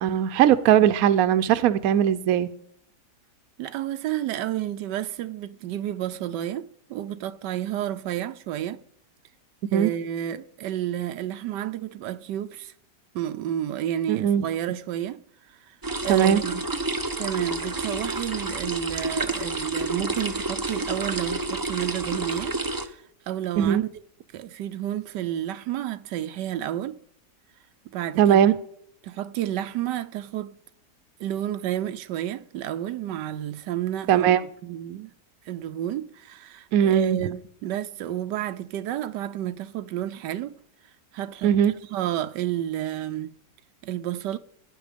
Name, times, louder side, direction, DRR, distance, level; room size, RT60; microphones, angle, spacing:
voice 1, 0.0-2.5 9.7-9.9 14.1-14.5 16.1-16.4 23.6-23.8 28.2-28.6 34.1-34.4 36.7-37.2 41.4-41.7, right 9 dB, 65° right, 1.1 m, -19 dB
voice 2, 3.6-8.8 9.7-12.7 13.1-15.2 15.7-15.8 16.0-16.6 17.2-23.8 24.3-27.0 27.9-28.4 29.0-30.6 31.2-35.1 35.5-40.6 41.1-43.3 43.8-44.4, right 12 dB, 90° right, 1.3 m, -31 dB
sound 1, 15.8-22.9, right 2 dB, 25° right, 0.4 m, -29 dB
16.5 x 9.6 x 5.1 m
omnidirectional pair, 1.8 m